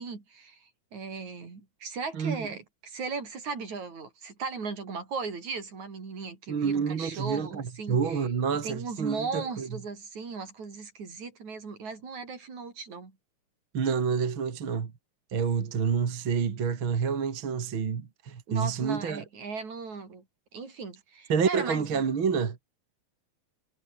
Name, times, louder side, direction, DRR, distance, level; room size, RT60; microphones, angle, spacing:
voice 1, 0.0-8.3 8.6-13.1 18.5-20.2 20.5-22.0, right 4 dB, 60° right, 6.1 m, -37 dB
voice 2, 2.1-2.5 6.5-9.7 13.7-14.9 15.3-19.2 21.3-22.6, right 6 dB, 40° right, 2.7 m, -28 dB
omnidirectional pair, 3.7 m